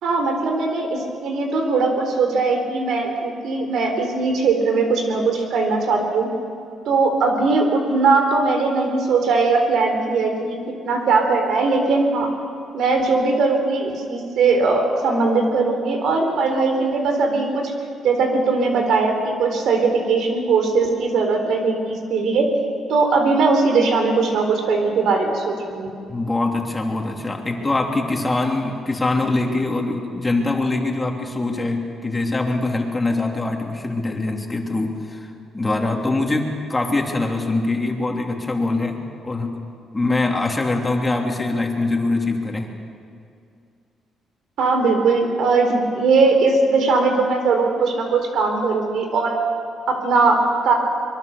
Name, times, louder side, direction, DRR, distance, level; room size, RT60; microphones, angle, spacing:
voice 1, 0.0-6.3 6.9-10.6 10.8-12.3 12.7-17.7 18.0-22.5 22.9-25.9 44.6-49.4 49.9-50.7, right 3 dB, 75° right, 4 dB, 4.1 m, -19 dB
voice 2, 26.1-35.3 35.5-39.0 39.2-39.6 39.9-42.7, left 2 dB, 20° left, 1 dB, 3.3 m, -23 dB
24.0 x 22.5 x 6.9 m, 2.4 s
cardioid pair, 90°, 0 cm